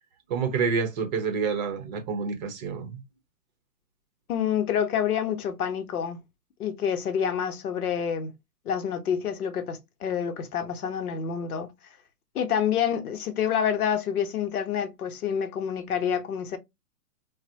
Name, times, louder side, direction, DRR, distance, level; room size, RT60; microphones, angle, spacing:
voice 1, 0.3-3.0, right 5 dB, 30° right, 0.7 m, -28 dB
voice 2, 4.3-6.2 6.6-8.3 8.7-11.7 12.3-16.6, left 8 dB, 70° left, 0.9 m, -28 dB
3.9 x 2.1 x 2.7 m
hypercardioid pair, 135°, 46 cm